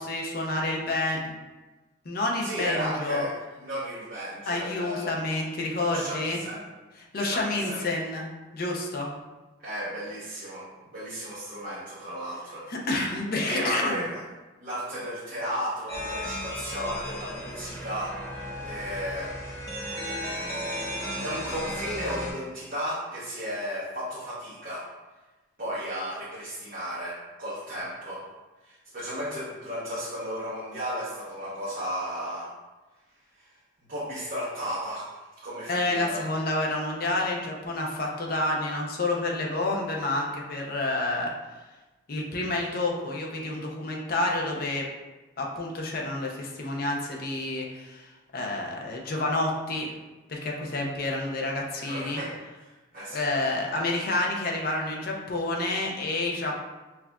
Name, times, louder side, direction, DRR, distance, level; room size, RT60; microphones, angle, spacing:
voice 1, 0.0-1.4 2.0-3.2 4.5-6.4 7.1-8.3 8.5-9.1 12.7-14.1 35.7-41.3 42.1-44.8 45.4-50.0 50.3-52.2 53.1-56.5, left 2 dB, 45° left, -1 dB, 0.5 m, -29 dB
voice 2, 2.4-3.3 3.6-5.2 5.9-6.7 7.2-7.9 9.6-12.7 13.5-14.2 14.6-19.3 19.9-20.6 21.2-24.9 25.6-28.3 28.6-32.5 33.4-33.5 33.9-35.1 35.4-36.3 51.8-52.4 52.7-53.3, equal, 45° right, -10 dB, 0.9 m, -34 dB
sound 1, 15.9-22.3, equal, 15° left, 1.0 m, -35 dB
5.7 x 2.4 x 2.3 m, 1.1 s
head